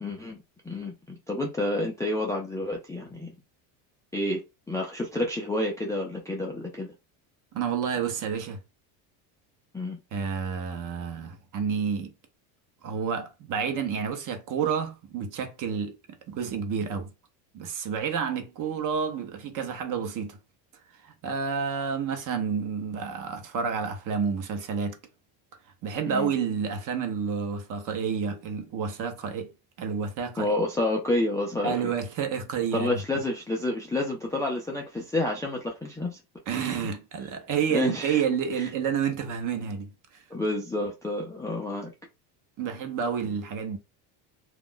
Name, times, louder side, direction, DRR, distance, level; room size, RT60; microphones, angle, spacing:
voice 1, 0.0-0.4 0.7-3.3 4.1-4.4 4.7-6.9 9.7-10.0 26.1-26.3 30.4-31.9 32.7-36.2 37.7-38.2 38.6-38.7 40.3-41.9, left 2 dB, 10° left, 0.3 m, -29 dB
voice 2, 7.5-8.6 10.1-12.1 12.8-16.0 16.3-17.1 17.5-20.4 21.0-25.0 25.8-29.5 29.8-30.5 31.6-33.0 36.5-39.9 42.6-43.8, right 6 dB, 45° right, 0.8 m, -29 dB
2.4 x 2.0 x 3.7 m
cardioid pair, 125°, 44 cm